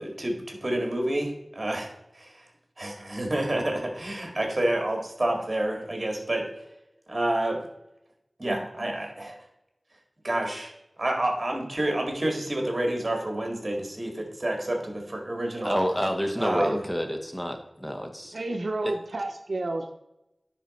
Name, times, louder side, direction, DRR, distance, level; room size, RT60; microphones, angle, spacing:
voice 1, 0.0-2.4 2.8-6.5 7.1-7.6 8.4-9.4 10.2-10.7 11.0-15.8 16.4-16.8, right 1 dB, 45° right, 2 dB, 1.9 m, -29 dB
voice 2, 15.6-18.3 18.8-18.9, equal, 10° left, 4 dB, 1.0 m, -28 dB
voice 3, 18.3-19.9, right 2 dB, 75° right, 5 dB, 0.6 m, -31 dB
10.0 x 3.9 x 4.2 m, 0.89 s
wide cardioid pair, 65°, 0 cm